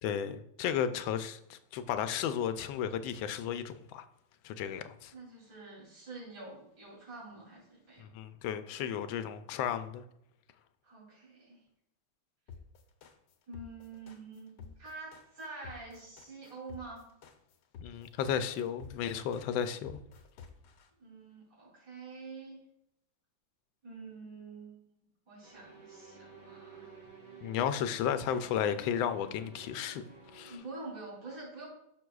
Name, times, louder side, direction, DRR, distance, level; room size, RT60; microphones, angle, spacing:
voice 1, 0.0-4.0 4.4-5.1 8.0-10.0 17.8-20.0 27.4-30.0 30.3-30.6, left 8 dB, 90° left, 1.4 m, -33 dB
voice 2, 5.1-8.1 10.8-11.6 13.5-17.0 21.0-22.6 23.8-24.8 25.3-26.9 28.3-28.4 30.5-31.7, right 3 dB, 65° right, 3.7 m, -47 dB
sound 1, 12.5-20.9, left 6 dB, 70° left, 1.4 m, -51 dB
sound 2, 25.4-30.6, right 3 dB, 90° right, 3.4 m, -52 dB
11.0 x 6.5 x 2.3 m
omnidirectional pair, 2.1 m